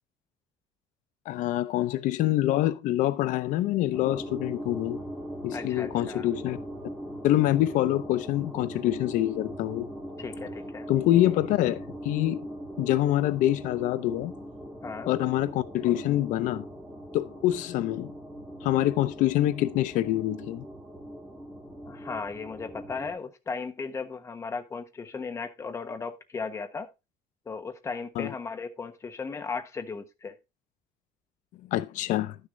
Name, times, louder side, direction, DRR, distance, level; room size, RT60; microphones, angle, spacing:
voice 1, 1.3-5.0 5.4-6.6 7.2-9.9 10.9-12.5 12.8-14.3 15.0-16.7 17.1-18.1 18.6-20.6 28.2-28.3 31.7-32.4, left 14 dB, 80° left, 0.6 m, -25 dB
sound 1, 3.9-23.1, equal, 5° left, 2.8 m, -40 dB
voice 2, 5.5-6.3 10.2-10.9 14.8-15.1 21.8-26.9 27.5-30.3, left 4 dB, 20° left, 1.2 m, -36 dB
11.5 x 6.6 x 3.7 m
cardioid pair, 160°, 13 cm